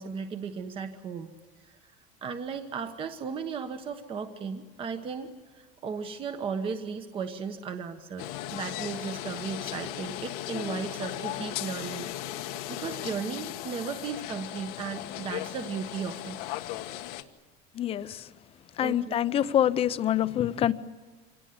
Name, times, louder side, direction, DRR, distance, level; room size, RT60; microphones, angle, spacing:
voice 1, 0.0-1.3 2.2-5.3 5.8-12.1 12.7-16.4 18.8-19.2, right 6 dB, 30° right, 7 dB, 1.2 m, -35 dB
sound 1, 8.2-17.2, left 14 dB, 85° left, 1.5 m, -37 dB
voice 2, 17.8-18.2 18.8-20.7, left 11 dB, 30° left, 14 dB, 0.7 m, -25 dB
25.5 x 18.0 x 9.7 m, 1.4 s
cardioid pair, 160°, 19 cm